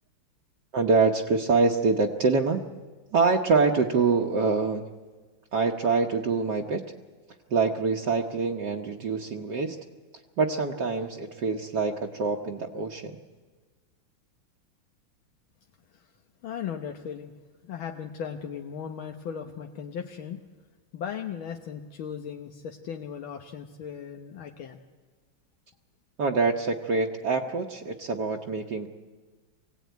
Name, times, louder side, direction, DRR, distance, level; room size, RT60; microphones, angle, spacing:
voice 1, 0.7-2.6 3.1-4.8 5.5-6.8 7.5-9.8 10.4-13.2 26.2-28.9, right 4 dB, 60° right, 1 dB, 1.6 m, -25 dB
voice 2, 16.4-17.3 17.6-20.4 20.9-24.8, left 8 dB, 75° left, 4 dB, 1.8 m, -37 dB
23.5 x 17.0 x 9.2 m, 1.4 s
omnidirectional pair, 2.2 m